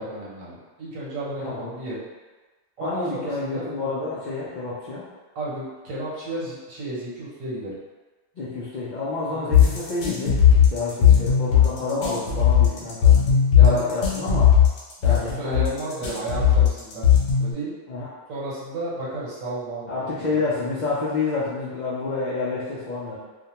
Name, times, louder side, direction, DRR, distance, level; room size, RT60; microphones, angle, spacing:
voice 1, 0.0-2.0 2.8-3.6 5.3-7.8 9.3-9.6 13.5-13.8 15.0-17.1 17.4-17.7 18.3-20.5, right 2 dB, 85° right, -7 dB, 1.2 m, -33 dB
voice 2, 1.4-1.7 2.8-5.1 8.4-10.4 10.7-13.2 13.6-14.5 15.0-15.6 17.9-18.1 19.9-23.2, left 3 dB, 85° left, -8 dB, 0.4 m, -28 dB
sound 1, 9.5-17.5, left 8 dB, 65° left, 0.8 m, -17 dB
2.4 x 2.1 x 2.8 m, 1.3 s
omnidirectional pair, 1.3 m